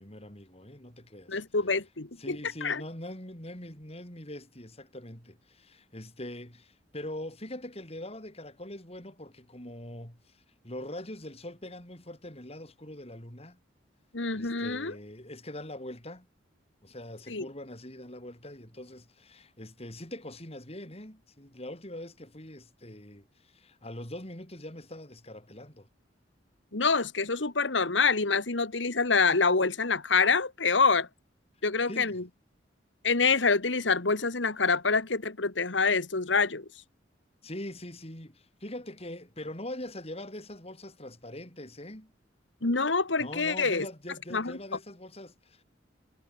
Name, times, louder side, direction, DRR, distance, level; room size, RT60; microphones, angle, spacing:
voice 1, 0.0-1.4 2.2-13.6 14.3-16.3 16.8-25.9 31.9-32.2 37.4-42.1 43.2-45.6, left 1 dB, 35° left, 6.3 m, -43 dB
voice 2, 1.3-2.8 14.1-14.9 17.3-17.5 26.7-31.1 31.6-32.2 33.0-36.7 42.6-43.9 44.3-44.6, left 4 dB, 80° left, 1.8 m, -26 dB
head